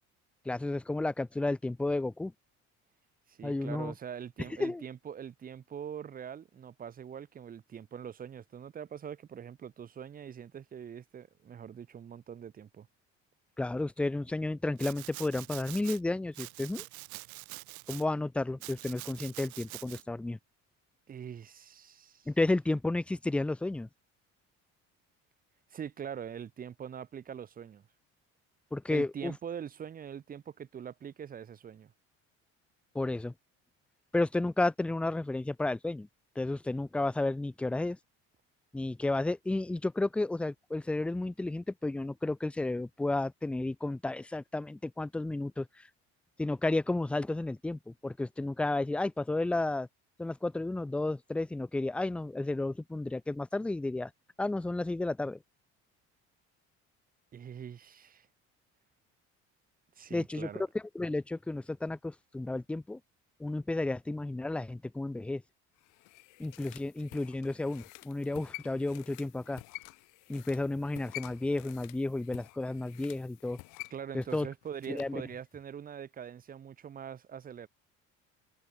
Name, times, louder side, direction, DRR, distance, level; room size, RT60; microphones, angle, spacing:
voice 1, 0.5-2.3 3.4-3.9 4.6-4.8 13.6-16.8 17.9-20.4 22.3-23.9 28.7-29.3 32.9-33.3 34.1-36.1 36.4-38.0 38.7-45.7 46.4-49.9 50.2-54.1 54.4-55.4 60.1-60.5 60.9-63.0 63.4-65.4 66.4-69.6 70.3-73.6 74.1-74.5 74.9-75.2, left 2 dB, 5° left, 0.5 m, -32 dB
voice 2, 3.3-12.9 21.1-22.3 25.7-27.8 28.9-31.9 57.3-58.3 60.0-60.6 73.9-77.7, right 8 dB, 30° right, 6.3 m, -43 dB
Domestic sounds home sounds, 14.8-16.0 16.3-18.0 18.6-20.0, right 23 dB, 75° right, 1.8 m, -45 dB
sound 1, 65.8-75.2 75.5-75.6, left 24 dB, 85° left, 4.6 m, -49 dB
cardioid pair, 175°, 30 cm